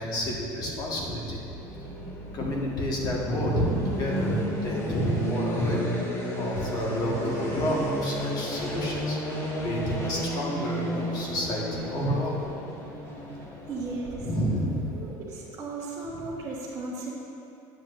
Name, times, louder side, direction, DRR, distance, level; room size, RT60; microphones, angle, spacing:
voice 1, 0.0-1.4 2.3-5.9 6.3-12.5 14.2-14.9 16.1-16.2, equal, 45° left, -3 dB, 1.6 m, -29 dB
sound 1, 1.4-15.2, equal, 25° left, 1.2 m, -33 dB
voice 2, 13.7-14.3 14.9-17.1, right 3 dB, 35° right, -8 dB, 1.1 m, -35 dB
10.0 x 7.6 x 2.6 m, 2.9 s
cardioid pair, 135°, 10 cm